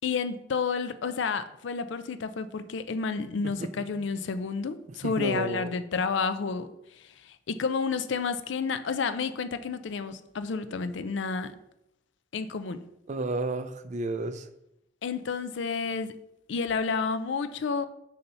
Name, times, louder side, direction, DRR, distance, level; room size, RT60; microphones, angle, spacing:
voice 1, 0.0-11.5 12.3-12.9 15.0-16.2 16.5-17.8, left 5 dB, 65° left, 0.4 m, -30 dB
voice 2, 5.0-5.7 13.1-14.5, right 2 dB, 40° right, 0.4 m, -32 dB
6.7 x 2.8 x 5.4 m
head